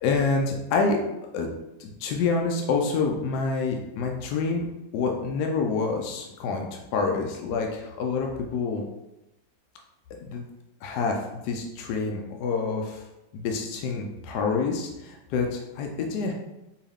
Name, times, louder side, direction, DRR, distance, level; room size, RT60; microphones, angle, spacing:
voice 1, 0.0-1.0 1.3-1.5 1.8-4.7 4.9-8.8 10.2-10.4 10.8-13.0 13.3-16.3, left 4 dB, 75° left, 2 dB, 1.1 m, -27 dB
4.7 x 2.9 x 3.4 m, 0.95 s
omnidirectional pair, 1.8 m